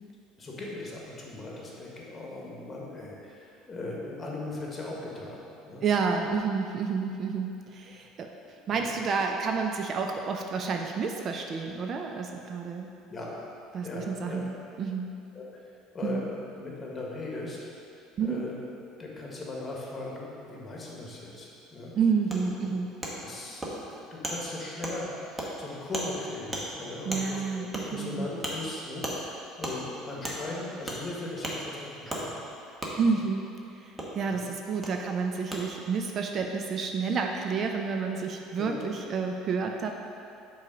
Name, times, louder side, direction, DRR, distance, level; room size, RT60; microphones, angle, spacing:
voice 1, 0.4-5.8 8.7-8.8 13.1-13.3 13.8-14.4 15.3-16.2 16.5-17.6 18.2-18.5 18.9-21.9 23.2-32.4 32.9-33.0 34.3-34.5 38.6-38.8, left 2 dB, 25° left, -3 dB, 1.4 m, -39 dB
voice 2, 5.8-8.3 8.7-12.9 13.7-15.1 16.0-16.3 18.2-18.4 22.0-22.9 27.0-28.3 33.0-33.5 33.8-39.9, right 5 dB, 45° right, 3 dB, 0.4 m, -30 dB
Wood, 22.3-22.4 23.0-23.1 23.6-23.7 24.2-24.4 24.8-25.0 25.4-25.5 25.9-26.1 26.5-26.6 27.1-27.2 27.7-27.8 28.4-28.5 29.0-29.2 29.6-29.8 30.2-30.4 30.9-31.0 31.4-31.6 32.1-32.2 32.8-32.9 34.0-34.1 34.8-34.9 35.5-35.6, right 1 dB, 15° right, 1.1 m, -33 dB
5.3 x 3.9 x 5.0 m, 2.6 s
supercardioid pair, 95°, 0 cm